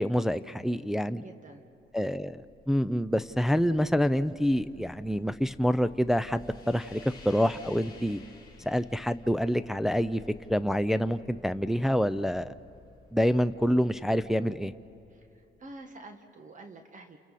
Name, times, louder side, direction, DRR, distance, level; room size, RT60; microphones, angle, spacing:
voice 1, 0.0-1.2 1.9-7.0 7.3-8.2 8.7-10.2 10.5-12.5 13.1-14.7, equal, ahead, 11 dB, 0.5 m, -27 dB
voice 2, 1.1-1.6 15.1-17.2, right 2 dB, 40° right, 5 dB, 1.7 m, -48 dB
sound 1, 1.7-15.8, left 4 dB, 20° left, 5.4 m, -54 dB
29.0 x 29.0 x 4.2 m, 2.7 s
cardioid pair, 90°, 20 cm